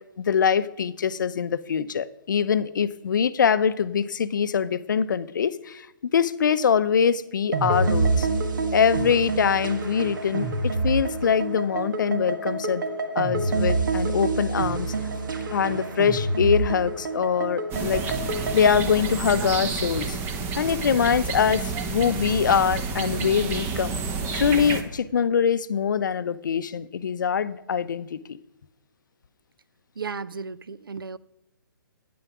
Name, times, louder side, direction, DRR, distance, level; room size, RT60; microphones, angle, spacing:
voice 1, 0.2-5.9 6.1-8.3 8.7-12.8 13.2-14.9 15.5-18.0 18.5-20.2 20.6-24.0 24.3-28.4, left 7 dB, 60° left, 0.6 m, -23 dB
sound 1, 7.5-18.8, right 3 dB, 65° right, 1.4 m, -27 dB
sound 2, 17.7-24.8, right 4 dB, 20° right, 1.0 m, -30 dB
voice 2, 30.0-31.2, right 5 dB, 80° right, 0.5 m, -35 dB
9.8 x 9.5 x 6.0 m
figure-of-eight pair, 140°, 11 cm